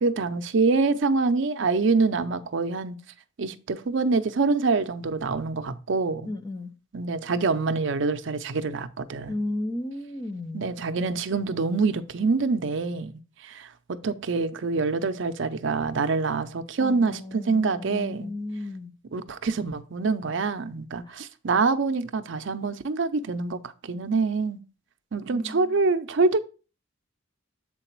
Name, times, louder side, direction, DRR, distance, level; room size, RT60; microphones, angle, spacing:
voice 1, 0.0-3.0 3.4-6.3 6.9-9.3 10.5-13.1 13.4-18.3 19.1-24.6 25.1-26.4, right 4 dB, 60° right, 0.5 m, -25 dB
voice 2, 6.2-6.8 9.3-10.7 16.8-18.9 21.1-21.2 25.3-25.8, left 2 dB, 20° left, 0.5 m, -34 dB
7.6 x 4.0 x 4.4 m
head